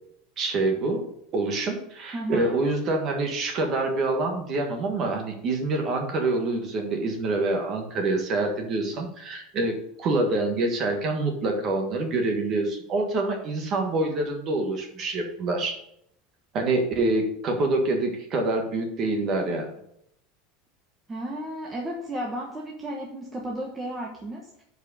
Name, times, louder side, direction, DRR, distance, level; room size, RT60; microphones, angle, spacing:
voice 1, 0.4-15.8 16.5-19.6, right 2 dB, 30° right, 3 dB, 1.6 m, -26 dB
voice 2, 2.1-2.6 21.1-24.6, right 1 dB, 15° right, -2 dB, 1.1 m, -33 dB
7.5 x 5.0 x 6.9 m, 0.74 s
supercardioid pair, 170°, 0 cm